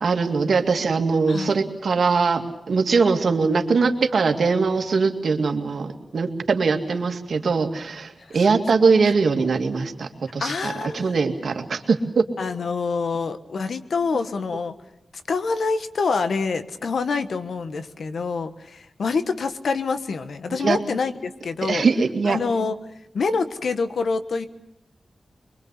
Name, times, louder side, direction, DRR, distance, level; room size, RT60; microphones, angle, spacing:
voice 1, 0.0-12.2 20.6-20.8 21.6-22.4, right 4 dB, 80° right, 5 dB, 2.2 m, -21 dB
voice 2, 10.4-11.1 12.4-14.8 15.1-21.9 22.2-22.8 23.1-24.5, left 4 dB, 85° left, 10 dB, 1.4 m, -26 dB
23.5 x 23.5 x 8.3 m, 0.84 s
wide cardioid pair, 85°, 0 cm